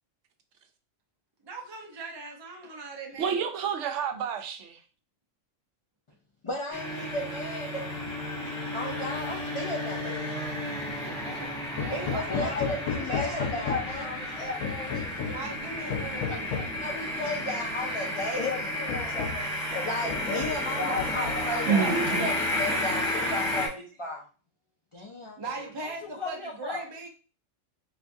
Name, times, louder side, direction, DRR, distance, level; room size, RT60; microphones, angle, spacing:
voice 1, 1.4-3.5 12.1-12.5 15.2-16.6 20.8-22.0 25.4-27.1, right 3 dB, 30° right, 0.5 m, -39 dB
voice 2, 3.2-4.8 21.7-22.3, right 6 dB, 70° right, 0.9 m, -28 dB
voice 3, 6.4-7.8 8.7-10.4 11.0-14.4 15.2-15.4 16.1-18.5 19.8-22.3 22.6-24.3 24.9-25.4 25.8-25.9 26.2-26.9, left 1 dB, 50° left, 0.3 m, -35 dB
sound 1, 6.7-23.7, left 1 dB, 5° left, 0.8 m, -32 dB
Hammer, 11.8-14.1 14.6-15.5 15.9-16.8 17.8-17.9 18.4-18.5 18.9-19.5 20.1-20.7 21.0-21.6, left 6 dB, 90° left, 1.0 m, -34 dB
voice 4, 12.3-15.1 18.3-21.8, left 5 dB, 35° left, 0.9 m, -35 dB
4.3 x 2.4 x 2.6 m
omnidirectional pair, 1.3 m